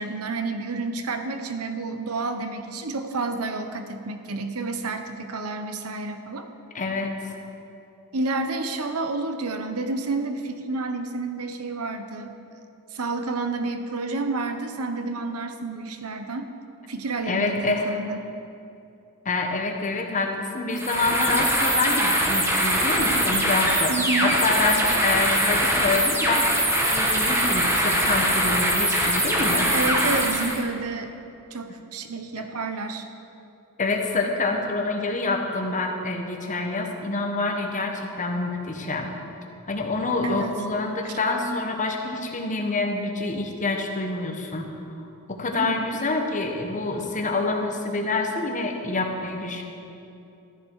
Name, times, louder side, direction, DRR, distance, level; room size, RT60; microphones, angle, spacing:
voice 1, 0.0-6.4 8.1-12.3 12.9-16.5 16.9-18.2 23.9-24.4 24.7-24.8 29.7-31.1 31.5-33.1 40.2-40.5 45.6-45.8, right 3 dB, 80° right, 7 dB, 0.9 m, -29 dB
voice 2, 6.7-7.4 17.2-18.0 19.2-29.7 32.4-32.5 33.8-39.1 39.7-44.7 45.3-49.6, left 3 dB, 35° left, 2 dB, 1.3 m, -27 dB
sound 1, 20.7-30.6, right 1 dB, 10° right, 1.4 m, -22 dB
13.5 x 11.0 x 4.7 m, 2.8 s
head